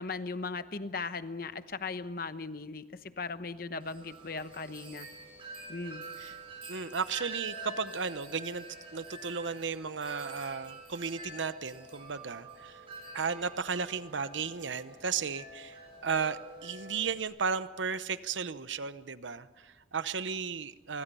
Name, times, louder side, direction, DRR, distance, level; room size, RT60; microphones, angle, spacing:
voice 1, 0.0-5.1 5.7-6.0, left 4 dB, 50° left, 12 dB, 1.0 m, -38 dB
Wind chime, 3.8-17.2, right 2 dB, 30° right, 6.8 m, -47 dB
voice 2, 6.7-8.6 8.9-12.8 13.1-21.0, right 5 dB, 90° right, 13 dB, 0.9 m, -34 dB
25.0 x 24.0 x 5.6 m, 1.2 s
head